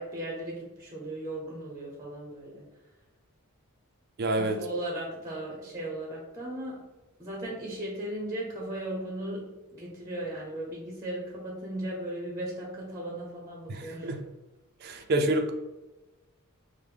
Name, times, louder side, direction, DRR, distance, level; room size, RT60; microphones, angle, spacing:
voice 1, 0.0-2.6 4.3-6.8 7.2-14.2, right 1 dB, 15° right, -2 dB, 0.7 m, -37 dB
voice 2, 4.2-4.6 13.7-14.2 14.8-15.5, right 1 dB, 45° right, 4 dB, 0.4 m, -28 dB
5.0 x 2.1 x 3.3 m, 1.1 s
head